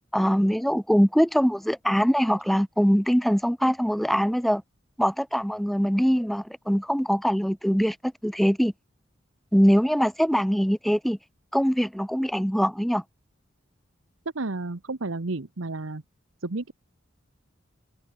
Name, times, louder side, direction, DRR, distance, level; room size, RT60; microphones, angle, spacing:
voice 1, 0.1-4.6 5.0-8.7 9.5-11.2 11.5-13.0, equal, ahead, 0.9 m, -22 dB
voice 2, 14.3-16.0 16.4-16.7, right 2 dB, 80° right, 1.1 m, -31 dB
head